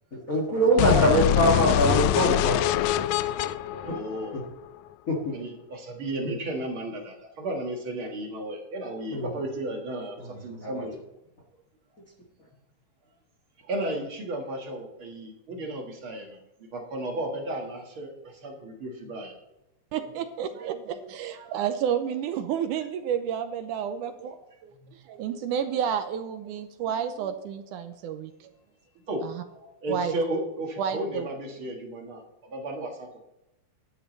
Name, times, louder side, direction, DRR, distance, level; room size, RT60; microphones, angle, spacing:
voice 1, 0.1-2.6 3.9-4.0 4.3-4.4 5.1-5.2 6.2-6.3 9.1-9.3 10.6-10.8, right 1 dB, 35° left, 0 dB, 1.4 m, -23 dB
voice 2, 0.7-1.2 3.7-4.5 5.3-11.0 13.7-16.4 16.7-19.4 29.1-29.2 29.5-33.2, right 1 dB, 45° right, 1 dB, 2.0 m, -34 dB
sound 1, 0.8-4.8, left 12 dB, 85° left, 1.6 m, -24 dB
voice 3, 19.9-24.8 25.1-28.5 29.2-29.4 29.9-30.2 30.8-31.3, right 8 dB, 80° right, 8 dB, 2.1 m, -30 dB
11.0 x 10.0 x 4.1 m, 0.91 s
omnidirectional pair, 3.8 m